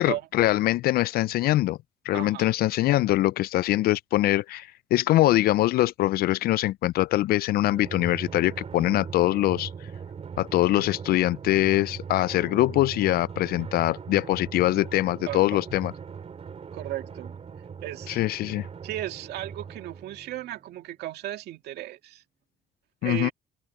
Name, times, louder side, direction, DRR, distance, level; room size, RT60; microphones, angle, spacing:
voice 1, 0.0-1.8 2.1-9.7 10.4-15.9 18.1-18.7 23.0-23.3, left 16 dB, 65° left, 0.4 m, -23 dB
voice 2, 2.1-2.5 15.3-15.6 16.7-17.4 17.8-18.2 18.8-22.2 23.0-23.3, right 14 dB, 75° right, 2.3 m, -35 dB
Drum, 7.7-20.8, right 6 dB, 35° right, 4.5 m, -40 dB
open air
cardioid pair, 110°, 17 cm